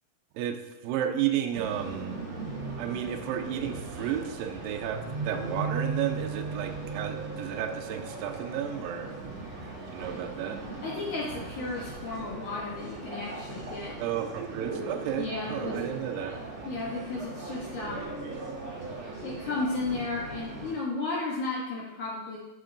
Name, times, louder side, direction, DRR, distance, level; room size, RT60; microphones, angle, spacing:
voice 1, 0.8-2.2 2.8-9.1 9.9-10.7 14.0-16.4, right 10 dB, 80° right, 4 dB, 2.0 m, -32 dB
sound 1, 1.5-20.7, right 3 dB, 65° right, 1.3 m, -38 dB
voice 2, 10.8-14.0 15.2-15.9 16.7-18.1 19.2-22.4, left 3 dB, 70° left, -5 dB, 1.9 m, -34 dB
8.1 x 7.2 x 2.5 m, 1.0 s
omnidirectional pair, 4.5 m